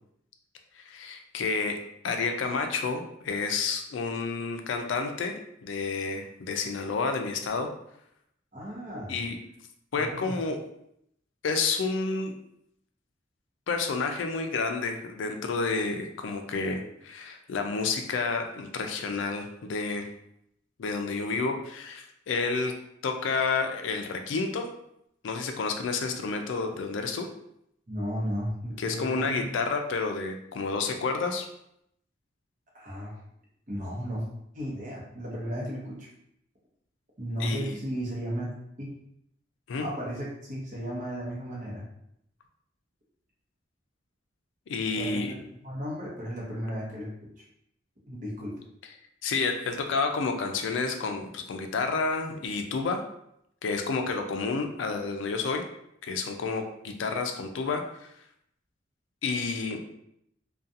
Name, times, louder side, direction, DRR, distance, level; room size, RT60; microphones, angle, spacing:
voice 1, 0.7-5.3 5.6-7.7 9.1-9.4 9.9-10.6 11.4-12.3 13.7-20.1 20.8-22.7 23.0-24.7 25.2-27.3 28.8-31.5 37.4-37.7 39.7-39.9 44.7-45.3 49.2-53.0 53.6-55.6 56.0-58.1 59.2-59.8, left 4 dB, 75° left, 5 dB, 0.4 m, -30 dB
voice 2, 8.5-9.2 10.0-10.4 27.9-29.5 32.7-33.2 33.7-34.3 34.5-36.1 37.2-38.5 38.8-38.9 39.8-41.8 45.0-45.2 45.5-47.3 48.1-48.5, equal, 45° right, -5 dB, 0.8 m, -34 dB
2.4 x 2.3 x 2.6 m, 0.75 s
head